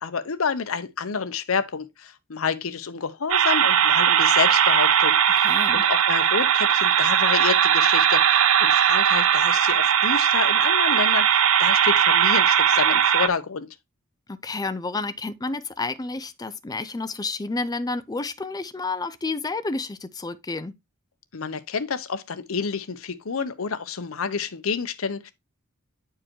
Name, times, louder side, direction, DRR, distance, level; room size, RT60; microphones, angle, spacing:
voice 1, 0.0-5.4 5.7-13.7 21.3-25.3, left 5 dB, 70° left, 0.7 m, -29 dB
sound 1, 3.3-13.3, right 9 dB, 75° right, 0.7 m, -19 dB
voice 2, 5.4-5.8 14.3-20.7, left 3 dB, 20° left, 0.5 m, -30 dB
8.7 x 4.7 x 3.0 m
head